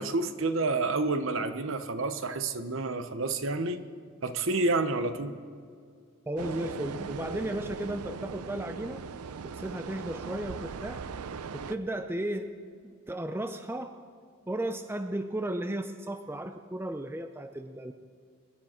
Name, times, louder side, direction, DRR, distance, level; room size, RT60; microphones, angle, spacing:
voice 1, 0.0-3.8 4.2-5.3, right 3 dB, 60° right, 10 dB, 0.8 m, -29 dB
voice 2, 6.3-9.0 9.4-11.0 11.5-12.5 12.8-13.9 14.5-17.9, right 1 dB, 10° right, 8 dB, 0.4 m, -34 dB
sound 1, 6.4-11.8, right 5 dB, 90° right, 0.5 m, -39 dB
23.0 x 11.5 x 4.4 m, 2.1 s
head